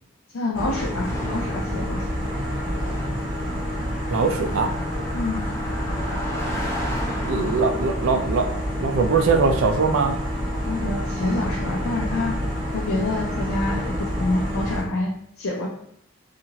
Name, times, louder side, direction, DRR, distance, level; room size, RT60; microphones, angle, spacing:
voice 1, 0.3-2.0 5.1-5.4 10.6-12.3 12.7-15.7, left 2 dB, 85° left, -2 dB, 0.5 m, -27 dB
sound 1, 0.5-14.8, equal, 25° right, 0.9 m, -28 dB
Car passing by, 1.0-10.5, left 1 dB, 15° left, 0.4 m, -36 dB
voice 2, 4.1-4.7 7.2-8.5 8.8-10.2, right 4 dB, 75° right, 5 dB, 0.4 m, -21 dB
2.8 x 2.5 x 2.8 m, 0.74 s
head